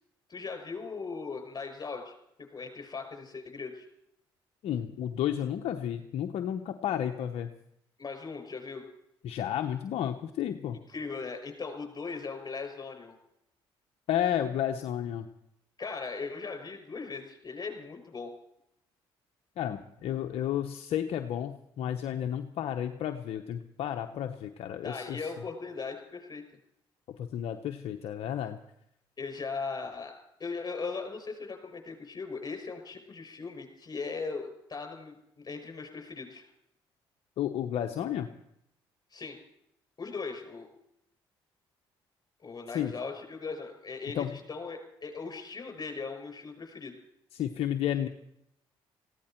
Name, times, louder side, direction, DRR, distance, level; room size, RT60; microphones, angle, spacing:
voice 1, 0.3-2.1 2.5-3.9 8.0-8.9 10.9-13.2 15.8-18.3 24.8-26.4 29.2-30.1 30.4-36.5 39.1-39.4 40.0-40.7 42.4-46.9, left 4 dB, 40° left, 5 dB, 6.3 m, -39 dB
voice 2, 4.6-7.5 9.2-10.8 14.1-15.3 19.6-25.3 27.2-28.6 37.4-38.3 42.7-42.9 44.1-44.3 47.3-48.1, left 10 dB, 70° left, 5 dB, 0.9 m, -32 dB
18.5 x 16.0 x 4.5 m, 0.78 s
supercardioid pair, 60°, 11 cm